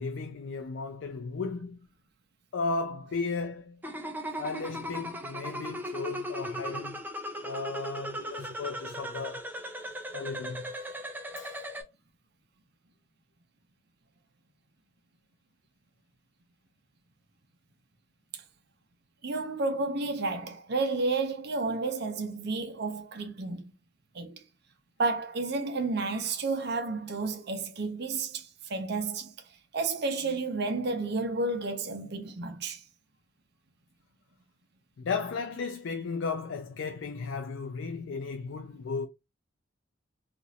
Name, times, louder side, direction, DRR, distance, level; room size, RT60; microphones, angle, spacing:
voice 1, 0.0-1.8 2.5-3.8 4.4-7.0 7.4-9.5 10.1-10.7 11.4-11.6 35.0-39.1, left 4 dB, 65° left, 0.4 m, -35 dB
sound 1, 3.8-11.8, equal, 10° right, 0.4 m, -37 dB
voice 2, 19.2-23.7 24.1-24.4 25.0-29.3 29.7-32.8, right 3 dB, 55° right, 0.6 m, -31 dB
3.0 x 2.5 x 2.7 m
head